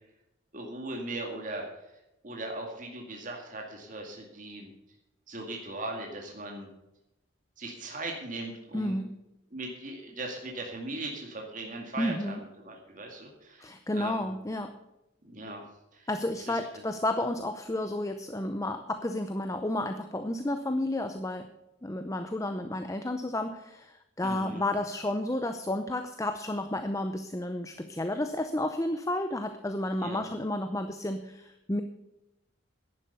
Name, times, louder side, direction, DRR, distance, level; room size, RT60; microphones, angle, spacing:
voice 1, 0.5-1.7 2.2-4.7 5.3-6.7 7.6-9.0 9.5-12.4 12.6-14.2 15.2-15.6 15.9-16.1 16.4-16.6 24.2-24.6 30.0-30.2, right 2 dB, 40° right, 1 dB, 2.1 m, -39 dB
voice 2, 8.7-9.1 12.0-12.4 13.6-14.7 16.1-21.5 21.8-31.8, left 1 dB, 15° left, 8 dB, 0.6 m, -31 dB
11.0 x 10.0 x 6.9 m, 0.91 s
head